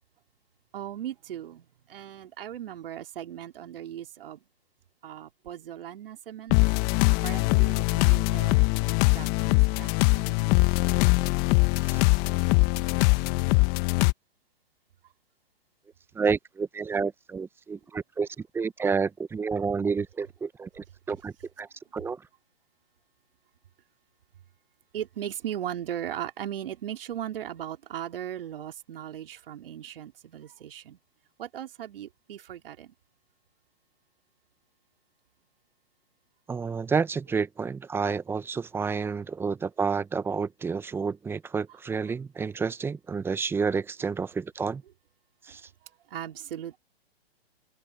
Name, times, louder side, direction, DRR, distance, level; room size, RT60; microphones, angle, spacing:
voice 1, 0.7-4.4 5.0-6.6 7.2-8.7 9.0-10.7 24.9-31.0 31.4-32.9 45.5-45.6 45.8-46.8, right 11 dB, 60° right, 3.2 m, -38 dB
sound 1, 6.5-14.1, left 25 dB, 30° left, 1.3 m, -22 dB
voice 2, 16.1-21.7 21.9-22.2 36.5-44.8 45.4-45.6, right 5 dB, 5° right, 0.7 m, -30 dB
open air
hypercardioid pair, 130°, 31 cm